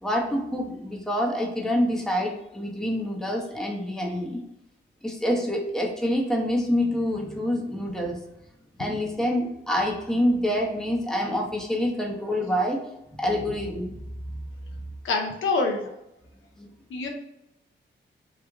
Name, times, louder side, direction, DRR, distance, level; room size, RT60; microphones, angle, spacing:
voice 1, 0.0-4.4 5.0-8.2 8.8-12.8 13.2-14.0 16.6-16.7, equal, 5° left, 0 dB, 0.8 m, -26 dB
voice 2, 15.0-15.9 16.9-17.1, left 3 dB, 80° left, 2 dB, 0.7 m, -25 dB
3.2 x 2.4 x 3.5 m, 0.83 s
cardioid pair, 65°, 20 cm